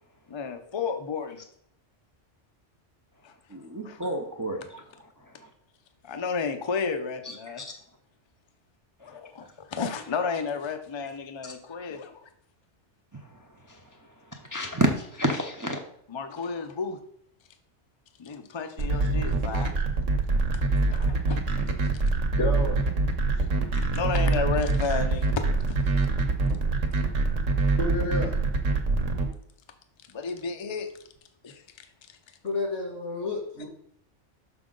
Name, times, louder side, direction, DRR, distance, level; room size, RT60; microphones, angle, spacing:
voice 1, 0.3-1.4 3.2-3.3 3.8-4.0 6.0-7.6 9.0-12.2 16.1-17.0 18.2-19.7 20.9-21.5 23.9-25.3 25.7-25.8 30.1-30.9 31.4-31.9 33.6-33.7, left 5 dB, 35° left, 6 dB, 0.5 m, -32 dB
voice 2, 3.5-5.5 7.2-7.7 9.0-9.2 11.4-11.5 13.1-15.8, right 1 dB, 20° right, 2 dB, 0.5 m, -31 dB
sound 1, 18.8-29.2, right 3 dB, 85° right, 1.3 m, -24 dB
voice 3, 22.4-22.8 27.8-28.4 32.4-33.7, left 2 dB, 85° left, -1 dB, 2.6 m, -30 dB
6.1 x 5.9 x 3.8 m, 0.68 s
omnidirectional pair, 1.2 m